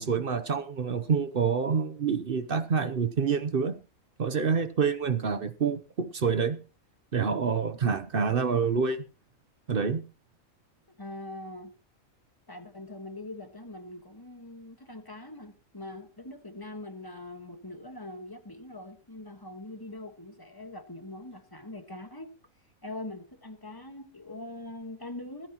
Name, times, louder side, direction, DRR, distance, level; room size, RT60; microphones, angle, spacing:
voice 1, 0.0-3.8 4.2-6.6 7.1-9.0 9.7-10.0, right 6 dB, 45° right, 0.9 m, -27 dB
voice 2, 10.9-11.7 12.5-22.3 22.8-25.5, left 1 dB, 15° left, 1.5 m, -42 dB
24.5 x 9.3 x 3.0 m
omnidirectional pair, 1.4 m